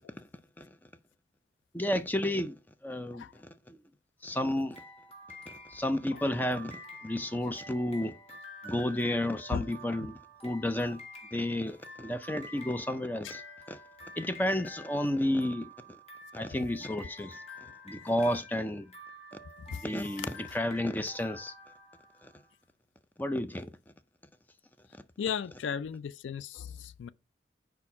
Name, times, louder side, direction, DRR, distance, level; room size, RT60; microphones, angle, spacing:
voice 1, 1.7-3.8 4.2-4.8 5.5-8.2 8.6-11.0 11.3-13.4 13.7-13.8 14.2-15.7 16.3-17.4 17.8-18.9 19.7-21.5 22.2-22.3 23.2-23.7, left 1 dB, 10° left, 0.4 m, -32 dB
sound 1, 4.7-22.4, left 1 dB, 35° left, 1.5 m, -49 dB
voice 2, 25.2-27.1, left 7 dB, 90° left, 0.3 m, -35 dB
4.6 x 4.3 x 5.8 m
head